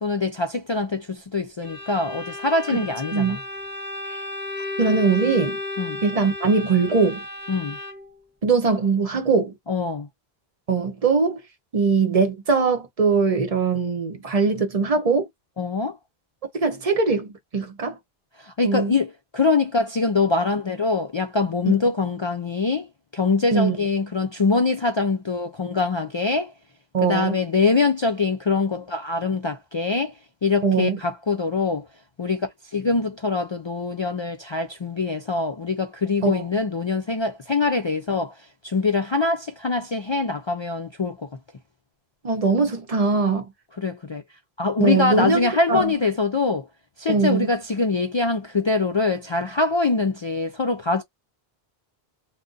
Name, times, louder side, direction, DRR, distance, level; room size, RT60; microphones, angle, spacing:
voice 1, 0.0-3.4 5.8-6.0 7.5-7.8 9.7-10.1 15.6-16.0 18.4-22.9 23.1-26.5 27.0-30.1 30.4-31.9 32.2-38.3 38.6-41.3 43.8-44.2 44.6-46.7 47.0-51.0, left 3 dB, 50° left, 0.3 m, -23 dB
Bowed string instrument, 1.6-8.2, left 2 dB, 10° right, 0.8 m, -34 dB
voice 2, 2.7-3.4 4.8-5.6 6.0-7.2 8.4-9.5 10.7-11.4 11.7-15.3 16.6-18.0 18.6-18.9 21.7-21.8 23.5-23.8 26.9-27.4 30.6-31.0 36.2-36.4 42.2-43.5 44.8-45.9 47.1-47.5, right 4 dB, 40° right, 0.7 m, -21 dB
2.5 x 2.1 x 3.7 m
omnidirectional pair, 1.0 m